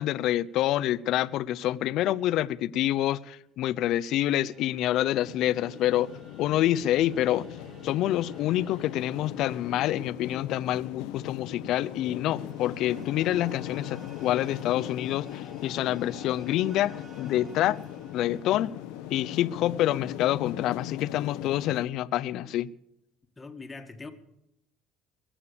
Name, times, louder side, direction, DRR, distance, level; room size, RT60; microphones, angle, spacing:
voice 1, 0.0-6.1 6.4-7.5 7.8-17.8 18.1-18.7 19.1-22.7, left 13 dB, 65° left, 0.6 m, -27 dB
sound 1, 3.7-20.2, right 2 dB, 30° right, 2.5 m, -52 dB
sound 2, 5.2-21.9, left 13 dB, 85° left, 0.9 m, -39 dB
voice 2, 23.4-24.1, left 3 dB, 20° left, 2.1 m, -42 dB
22.0 x 8.8 x 6.9 m
cardioid pair, 110°, 0 cm